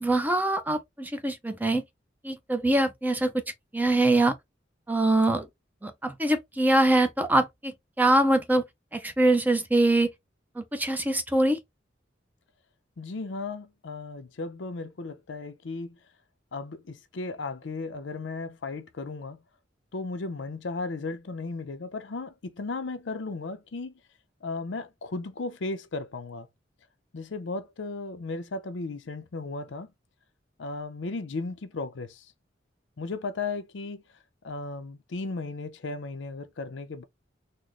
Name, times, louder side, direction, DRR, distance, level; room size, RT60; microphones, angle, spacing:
voice 1, 0.0-1.8 2.2-3.3 3.7-4.3 4.9-5.5 5.8-8.6 8.9-10.1 10.6-11.6, right 1 dB, 10° right, 0.6 m, -23 dB
voice 2, 13.0-16.0 16.5-19.4 19.9-23.9 24.4-26.5 27.1-29.9 30.6-32.3 33.0-34.0 34.4-37.0, left 3 dB, 75° left, 0.6 m, -35 dB
4.0 x 2.1 x 3.0 m
head